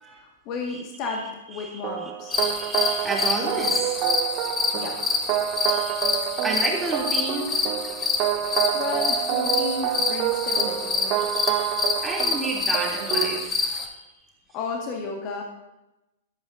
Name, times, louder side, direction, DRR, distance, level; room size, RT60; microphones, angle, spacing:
voice 1, 0.1-2.4 4.7-5.2 8.7-11.2 14.5-15.4, left 4 dB, 35° left, 1 dB, 1.9 m, -33 dB
voice 2, 0.7-4.0 5.7-6.0 6.4-7.5 11.2-14.0, right 3 dB, 10° right, -3 dB, 3.1 m, -32 dB
sound 1, 1.8-13.5, right 12 dB, 35° right, 0.6 m, -28 dB
sound 2, 2.3-13.9, left 4 dB, 15° left, 1.3 m, -27 dB
21.0 x 8.8 x 2.7 m, 0.95 s
figure-of-eight pair, 105°, 0 cm